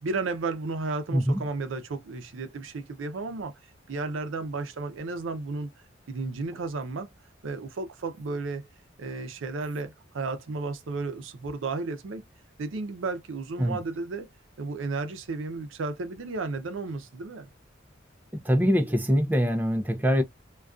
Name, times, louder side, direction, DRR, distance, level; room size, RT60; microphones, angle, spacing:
voice 1, 0.0-3.5 3.9-5.7 6.1-7.1 7.4-8.7 9.0-12.2 12.6-14.3 14.6-17.5, right 3 dB, 85° right, 0.5 m, -33 dB
voice 2, 1.1-1.4 13.6-13.8 18.3-20.2, equal, 10° right, 0.3 m, -23 dB
2.3 x 2.2 x 2.3 m
head